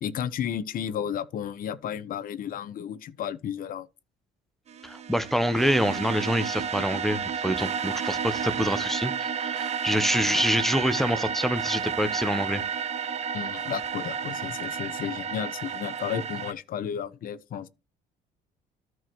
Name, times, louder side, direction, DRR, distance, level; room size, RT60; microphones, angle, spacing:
voice 1, 0.0-3.9 13.3-17.7, left 9 dB, 55° left, 0.9 m, -33 dB
sound 1, 4.7-16.5, right 7 dB, 40° right, 0.7 m, -31 dB
voice 2, 4.8-12.6, equal, ahead, 0.8 m, -26 dB
14.0 x 4.7 x 3.0 m
cardioid pair, 110°, 17 cm